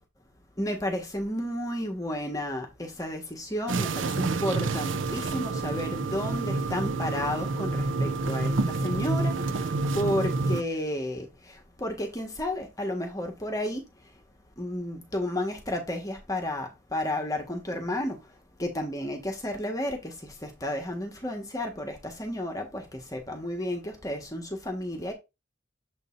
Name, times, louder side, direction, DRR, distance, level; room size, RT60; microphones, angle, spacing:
voice 1, 0.6-9.6 9.9-11.3 11.8-13.8 14.6-18.2 18.6-20.1 20.4-25.1, left 1 dB, 20° left, 1.5 m, -32 dB
sound 1, 3.7-10.6, right 3 dB, 75° right, 0.6 m, -28 dB
7.4 x 5.2 x 2.6 m
head